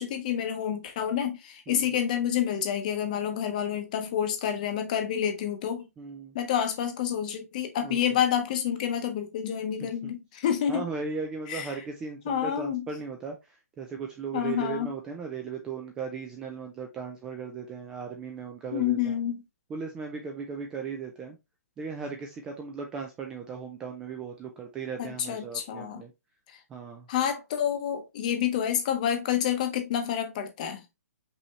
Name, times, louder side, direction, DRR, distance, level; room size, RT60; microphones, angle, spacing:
voice 1, 0.0-5.9 6.3-10.8 11.5-11.8 12.2-12.9 14.3-14.9 18.7-19.4 25.0-26.0 27.1-30.8, left 9 dB, 30° left, 0.8 m, -28 dB
voice 2, 6.0-6.4 7.8-8.0 9.8-10.1 10.7-19.1 19.7-21.4 21.8-26.1 26.7-27.1, right 5 dB, 10° right, 0.3 m, -37 dB
5.4 x 2.8 x 3.1 m
hypercardioid pair, 170°, 9 cm